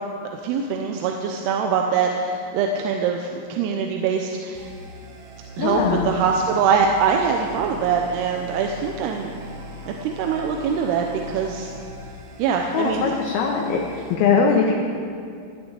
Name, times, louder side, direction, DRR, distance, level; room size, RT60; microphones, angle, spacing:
voice 1, 0.4-4.7 5.6-9.3 9.9-11.7 12.4-13.1, right 6 dB, 80° right, 3 dB, 2.8 m, -23 dB
sound 1, 4.5-14.1, right 1 dB, 60° right, 2.2 m, -40 dB
voice 2, 5.6-6.1 12.7-14.7, left 5 dB, 75° left, 0 dB, 2.7 m, -21 dB
15.0 x 6.8 x 8.9 m, 2.4 s
omnidirectional pair, 4.6 m